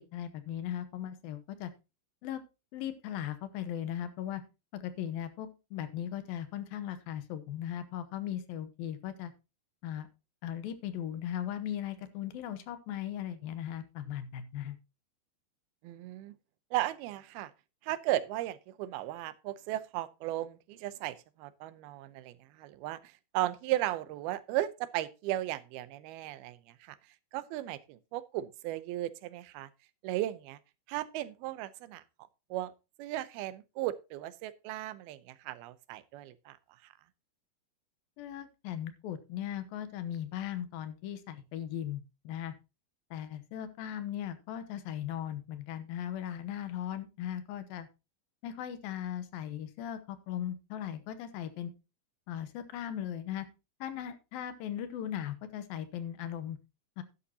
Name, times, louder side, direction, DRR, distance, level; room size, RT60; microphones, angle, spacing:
voice 1, 0.0-1.7 2.2-2.4 2.7-4.4 4.7-9.3 9.8-10.1 10.4-14.8 38.2-42.5 43.1-47.9 48.4-51.7 52.3-53.5 53.8-56.6 57.0-57.1, left 10 dB, 80° left, 2.7 m, -38 dB
voice 2, 15.8-16.4 16.7-17.5 17.8-27.0 27.3-29.7 30.0-30.6 30.9-32.0 32.5-32.7 33.0-36.6, right 15 dB, 85° right, 2.6 m, -36 dB
11.5 x 11.0 x 2.8 m
omnidirectional pair, 4.3 m